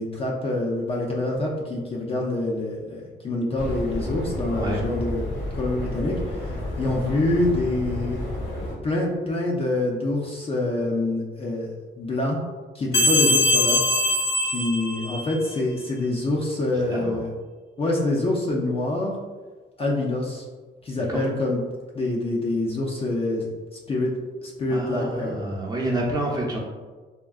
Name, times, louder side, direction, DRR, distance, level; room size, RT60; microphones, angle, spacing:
voice 1, 0.0-5.3 5.5-6.5 6.8-8.2 8.8-11.7 12.0-12.4 12.7-13.8 14.4-17.3 17.8-19.2 19.8-20.4 20.8-21.6 21.9-23.5 23.9-24.1 24.4-25.4, left 2 dB, 30° left, -2 dB, 0.5 m, -26 dB
sound 1, 3.6-8.7, left 1 dB, 80° left, 1.0 m, -31 dB
sound 2, 12.9-15.5, left 2 dB, 60° left, 0.8 m, -22 dB
voice 2, 16.9-17.2 21.1-21.2 24.7-26.6, right 1 dB, 20° right, -3 dB, 0.7 m, -28 dB
3.5 x 2.1 x 2.4 m, 1.3 s
cardioid pair, 90°, 20 cm